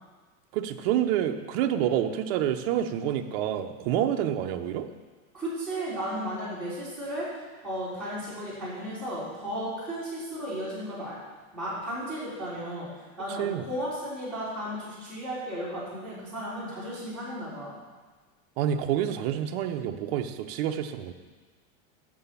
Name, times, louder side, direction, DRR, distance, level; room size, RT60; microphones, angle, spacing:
voice 1, 0.5-4.9 13.4-13.6 18.6-21.1, right 10 dB, 45° right, 6 dB, 0.7 m, -28 dB
voice 2, 5.3-7.3 7.6-11.1 11.5-12.9 13.2-17.7, equal, ahead, -12 dB, 3.3 m, -34 dB
7.7 x 6.8 x 6.9 m, 1.4 s
supercardioid pair, 175°, 41 cm